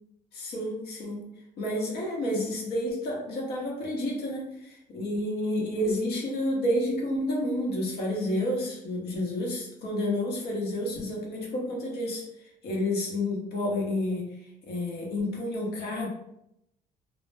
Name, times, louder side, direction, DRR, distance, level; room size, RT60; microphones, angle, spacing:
voice 1, 0.3-1.3 1.6-14.3 14.6-16.1, left 1 dB, 70° left, -1 dB, 0.9 m, -30 dB
2.1 x 2.0 x 3.2 m, 0.79 s
cardioid pair, 110°, 17 cm